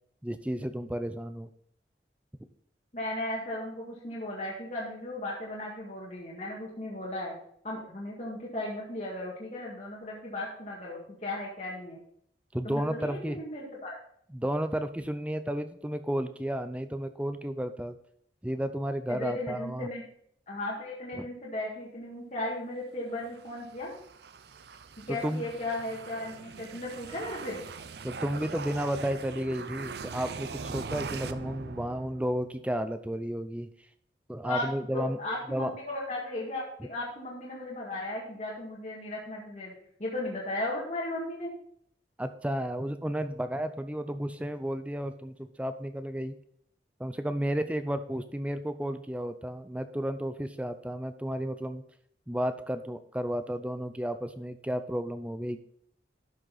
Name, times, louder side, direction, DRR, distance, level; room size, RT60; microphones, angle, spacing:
voice 1, 0.2-1.5 12.5-13.4 14.3-18.0 18.4-19.9 21.2-21.3 25.1-25.4 28.0-33.7 34.3-35.2 35.5-35.7 42.2-46.3 47.0-51.8 52.3-55.6, equal, 5° right, 10 dB, 0.5 m, -32 dB
voice 2, 2.9-7.3 7.6-12.0 12.6-14.0 19.1-20.0 20.5-23.9 25.1-27.6 34.4-34.7 34.9-39.7 40.0-41.5, left 1 dB, 40° left, -5 dB, 1.9 m, -36 dB
sound 1, 23.2-32.6, right 4 dB, 60° right, 0.6 m, -41 dB
12.0 x 6.4 x 4.1 m, 0.66 s
head